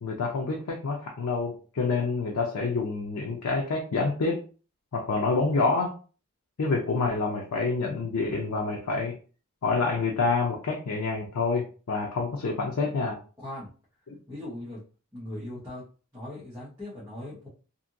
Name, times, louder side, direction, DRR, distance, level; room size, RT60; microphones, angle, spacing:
voice 1, 0.0-4.4 4.9-6.0 6.6-9.2 9.6-13.2 14.1-14.2, left 4 dB, 90° left, 0 dB, 0.5 m, -27 dB
voice 2, 13.4-13.7 14.3-14.8 15.1-15.8 16.1-17.5, left 1 dB, 15° right, -9 dB, 1.0 m, -39 dB
2.7 x 2.6 x 2.5 m, 0.37 s
head